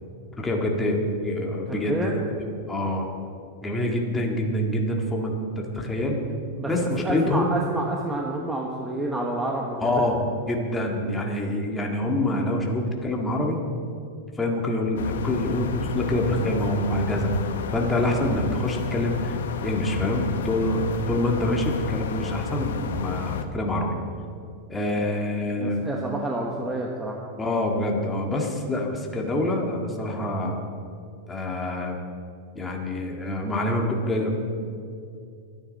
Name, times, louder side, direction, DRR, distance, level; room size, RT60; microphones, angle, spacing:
voice 1, 0.4-2.1 2.7-3.1 3.6-6.2 6.7-7.5 9.8-10.1 10.5-13.6 14.4-17.3 17.7-23.9 24.7-25.9 27.4-30.6 31.3-32.0 32.6-34.5, left 1 dB, 10° left, 0 dB, 1.9 m, -26 dB
voice 2, 1.7-2.2 6.6-6.7 7.0-10.0 25.0-25.2 25.5-27.2, right 1 dB, 10° right, -1 dB, 1.2 m, -29 dB
sound 1, 15.0-23.4, left 7 dB, 85° left, 1.0 m, -31 dB
24.5 x 10.0 x 4.2 m, 2.4 s
supercardioid pair, 150°, 0 cm